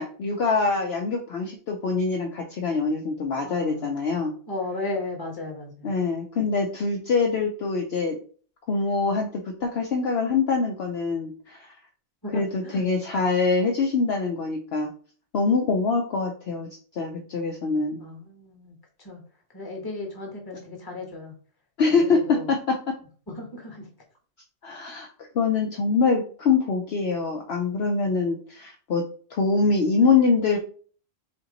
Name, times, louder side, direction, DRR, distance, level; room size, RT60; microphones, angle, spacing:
voice 1, 0.0-4.3 5.8-8.2 8.7-11.7 12.3-14.9 15.3-18.0 21.8-22.7 24.6-25.1 25.3-29.0 29.3-30.6, left 4 dB, 60° left, 2 dB, 0.8 m, -24 dB
voice 2, 3.4-3.9 4.5-5.9 12.2-12.8 18.0-19.2 19.5-21.3 21.9-22.5 23.3-23.9, left 2 dB, 20° left, 1 dB, 1.1 m, -35 dB
3.5 x 2.8 x 3.9 m, 0.43 s
omnidirectional pair, 1.3 m